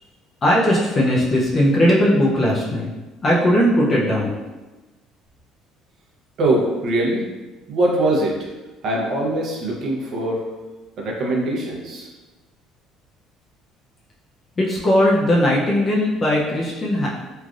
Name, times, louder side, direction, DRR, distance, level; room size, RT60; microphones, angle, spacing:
voice 1, 0.4-2.9 3.2-4.4 14.6-17.1, left 1 dB, 30° left, -4 dB, 0.5 m, -18 dB
voice 2, 6.4-7.2 7.7-8.5 8.8-10.4 11.0-12.1, right 1 dB, 55° right, -2 dB, 0.7 m, -22 dB
3.2 x 2.4 x 2.4 m, 1.2 s
cardioid pair, 125°, 0 cm